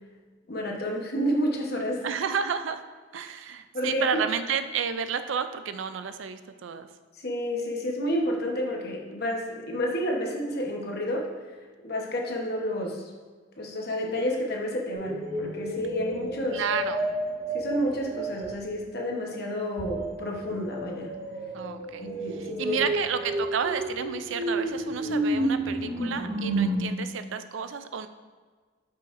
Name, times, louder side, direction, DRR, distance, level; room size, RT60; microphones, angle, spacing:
voice 1, 0.5-2.0 3.7-4.2 7.2-11.3 11.8-13.0 13.6-16.6 17.5-21.1 22.0-22.8, equal, 50° left, 0 dB, 1.1 m, -30 dB
voice 2, 2.0-2.8 3.1-6.9 16.5-17.0 21.5-22.1 22.4-28.1, right 7 dB, 65° right, 10 dB, 0.4 m, -31 dB
sound 1, 14.9-18.6 19.8-26.7, right 1 dB, 30° right, 1.3 m, -31 dB
8.8 x 5.6 x 2.6 m, 1.5 s
head